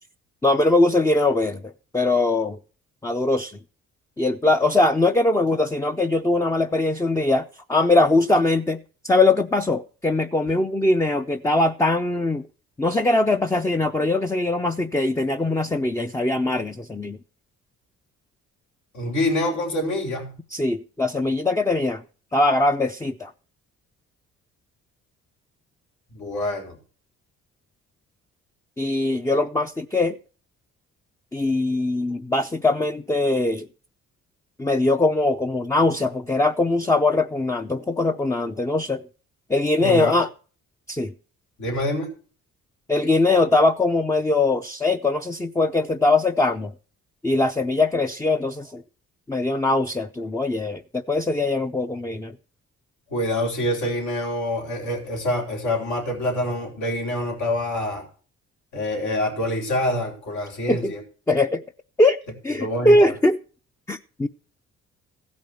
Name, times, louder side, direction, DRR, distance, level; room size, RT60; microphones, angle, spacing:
voice 1, 0.4-2.6 3.0-3.6 4.2-8.8 9.0-12.5 12.8-17.2 20.5-22.0 22.3-23.3 28.8-30.2 31.3-33.7 34.6-39.0 39.5-40.3 40.9-41.1 42.9-46.7 47.2-48.8 49.3-52.4 60.7-60.9 61.3-61.6 62.0-62.2 62.4-63.4 63.9-64.3, left 2 dB, 10° left, 0.5 m, -21 dB
voice 2, 18.9-20.4 26.1-26.8 39.8-40.2 41.6-42.1 53.1-58.0 58.7-61.0 62.6-63.1, left 1 dB, 70° left, 3.9 m, -26 dB
16.0 x 5.3 x 7.7 m
cardioid pair, 90°, 30 cm